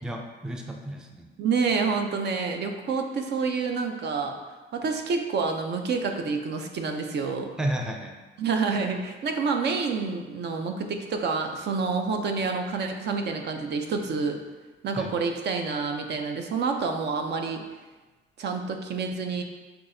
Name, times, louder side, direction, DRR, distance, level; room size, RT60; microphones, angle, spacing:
voice 1, 0.0-1.3 7.6-8.2 14.9-15.2, right 1 dB, 5° right, 2 dB, 0.4 m, -32 dB
voice 2, 1.4-4.4 4.7-7.5 8.4-14.4 14.8-17.6 18.4-19.4, right 4 dB, 60° right, 4 dB, 0.5 m, -28 dB
5.9 x 2.8 x 2.6 m, 1.2 s
cardioid pair, 90°, 20 cm